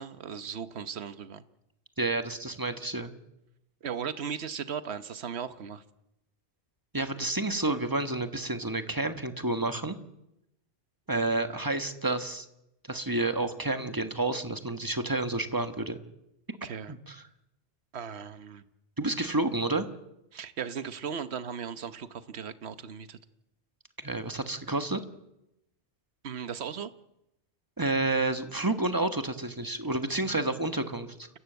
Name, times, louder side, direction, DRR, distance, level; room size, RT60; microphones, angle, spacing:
voice 1, 0.0-1.4 3.8-5.8 16.6-16.9 17.9-18.6 20.3-23.2 26.2-26.9, right 7 dB, 70° right, 12 dB, 1.3 m, -37 dB
voice 2, 2.0-3.1 6.9-9.9 11.1-12.5 12.9-16.0 16.9-17.2 19.0-19.8 24.0-25.0 27.8-31.3, right 2 dB, 20° right, 8 dB, 1.4 m, -30 dB
29.0 x 16.0 x 8.0 m, 0.88 s
omnidirectional pair, 1.1 m